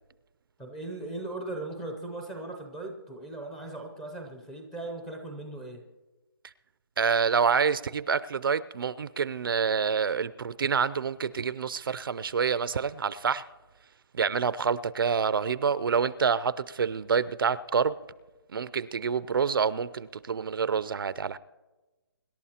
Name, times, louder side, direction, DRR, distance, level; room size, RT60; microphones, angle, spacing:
voice 1, 0.6-5.8, right 2 dB, 5° left, 2 dB, 0.5 m, -38 dB
voice 2, 7.0-13.4 14.1-18.0 18.5-21.4, right 6 dB, 60° right, 18 dB, 0.4 m, -27 dB
25.0 x 11.5 x 2.8 m, 1.2 s
hypercardioid pair, 175°, 13 cm